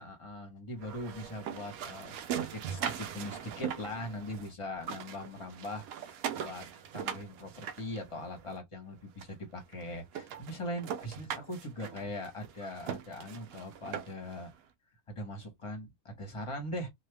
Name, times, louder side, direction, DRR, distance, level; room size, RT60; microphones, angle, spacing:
voice 1, 0.0-6.7 6.9-14.5 15.1-16.9, left 1 dB, 25° left, 0.8 m, -41 dB
sound 1, 0.8-4.5 4.8-8.5 9.2-9.3 9.7-9.8 10.1-14.4, right 8 dB, 70° right, 0.9 m, -40 dB
3.2 x 2.2 x 3.3 m
omnidirectional pair, 1.8 m